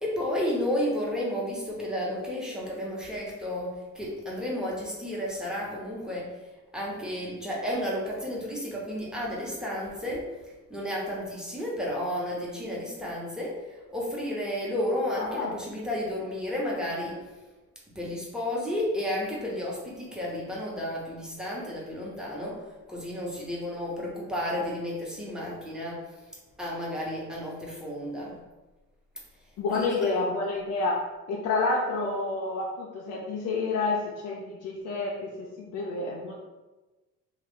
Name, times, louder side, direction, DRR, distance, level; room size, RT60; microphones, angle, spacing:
voice 1, 0.0-6.3 6.7-10.3 10.7-17.2 17.9-22.6 22.9-26.2 26.6-28.4 29.7-30.1, left 1 dB, ahead, -5 dB, 1.1 m, -32 dB
voice 2, 15.1-15.6 29.6-31.0 31.3-36.3, left 3 dB, 85° left, -4 dB, 0.6 m, -29 dB
3.1 x 2.4 x 3.7 m, 1.1 s
cardioid pair, 90°, 30 cm